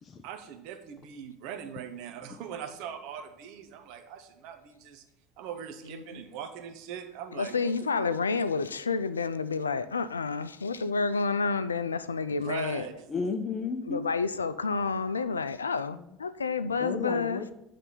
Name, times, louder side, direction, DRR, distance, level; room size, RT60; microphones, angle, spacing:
voice 1, 0.2-5.0 5.4-8.1 12.4-12.9, right 8 dB, 55° right, 0.8 m, -41 dB
voice 2, 5.9-6.2 7.3-12.9 13.9-17.4, left 4 dB, 80° left, 0.3 m, -29 dB
voice 3, 13.1-14.0 16.0-16.2 16.8-17.5, left 4 dB, 30° left, 0.5 m, -34 dB
8.1 x 3.3 x 5.6 m
figure-of-eight pair, 70°, 0 cm